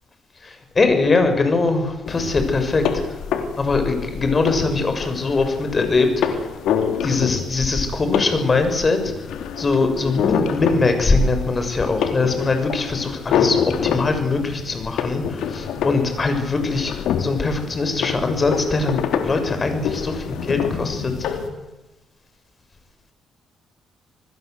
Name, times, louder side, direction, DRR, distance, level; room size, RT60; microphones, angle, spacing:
voice 1, 0.4-3.2 3.6-6.5 7.0-9.1 9.6-16.9 17.2-21.1, left 3 dB, 30° left, 7 dB, 6.5 m, -21 dB
sound 1, 2.1-21.5, left 7 dB, 80° left, 3.6 m, -27 dB
27.5 x 20.0 x 8.1 m, 1.0 s
cardioid pair, 90°, 0 cm